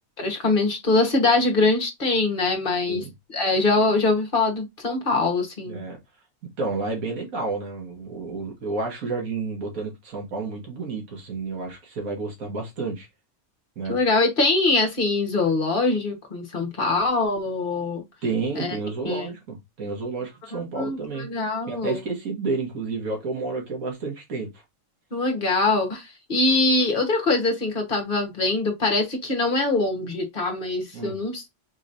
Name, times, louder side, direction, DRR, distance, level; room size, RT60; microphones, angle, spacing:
voice 1, 0.2-3.0 3.3-5.8 13.9-18.0 18.5-18.7 19.0-19.3 20.5-22.0 25.1-31.5, left 3 dB, 40° left, 1.4 m, -23 dB
voice 2, 5.7-6.0 6.6-13.1 13.8-14.0 18.2-21.3 21.7-24.6 30.9-31.2, right 3 dB, 80° right, 1.9 m, -30 dB
4.8 x 3.1 x 2.6 m
omnidirectional pair, 1.4 m